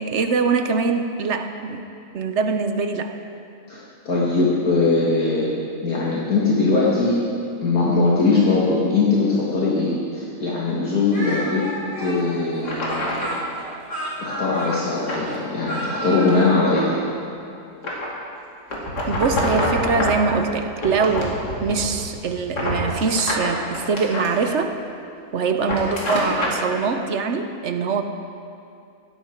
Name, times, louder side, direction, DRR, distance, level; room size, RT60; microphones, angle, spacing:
voice 1, 0.0-1.9 2.1-3.1 19.1-24.7 25.3-28.0, right 5 dB, 55° right, 7 dB, 0.9 m, -23 dB
voice 2, 4.1-5.5 5.8-7.2 7.6-11.7 12.0-13.4 14.2-16.9, left 3 dB, 65° left, -6 dB, 2.3 m, -21 dB
Speech, 11.1-16.6, right 1 dB, 30° left, 4.2 m, -31 dB
sound 1, 12.0-12.1 12.6-13.4 14.7-15.2 15.6-15.9 16.3-17.1 17.8-18.2 18.7-20.3 20.8-22.0 22.3-24.3 25.5-26.6, left 1 dB, 85° left, 2.9 m, -26 dB
16.5 x 13.5 x 4.5 m, 2.5 s
omnidirectional pair, 1.7 m